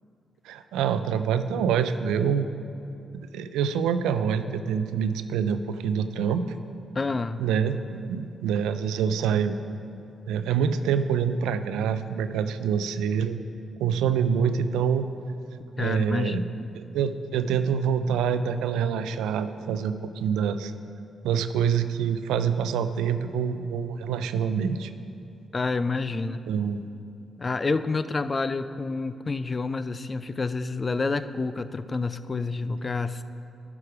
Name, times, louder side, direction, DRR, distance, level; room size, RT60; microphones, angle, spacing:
voice 1, 0.5-2.5 3.3-6.4 7.4-9.6 10.3-13.4 13.8-15.1 15.8-16.4 16.7-20.7 21.2-24.9 26.5-26.8, right 7 dB, 85° right, 11 dB, 0.3 m, -26 dB
voice 2, 6.9-7.4 15.8-16.7 25.5-26.4 27.4-33.2, left 3 dB, 40° left, 13 dB, 0.4 m, -28 dB
12.0 x 4.9 x 4.9 m, 2.6 s
supercardioid pair, 50°, 0 cm